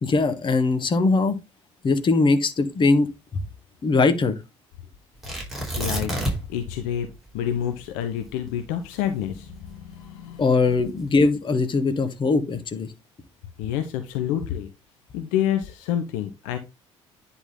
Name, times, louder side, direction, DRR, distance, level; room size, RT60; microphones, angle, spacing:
voice 1, 0.0-1.4 1.8-3.4 3.8-4.4 10.4-12.9, left 3 dB, 35° left, 1.3 m, -21 dB
Tearing, 5.2-6.6 6.9-7.0 7.6-9.9 10.6-11.1, right 1 dB, ahead, 4.3 m, -29 dB
voice 2, 5.8-6.1 6.5-7.1 7.3-10.4 13.6-14.7 15.1-16.6, left 10 dB, 60° left, 0.8 m, -28 dB
9.8 x 4.0 x 3.8 m
figure-of-eight pair, 50°, 15 cm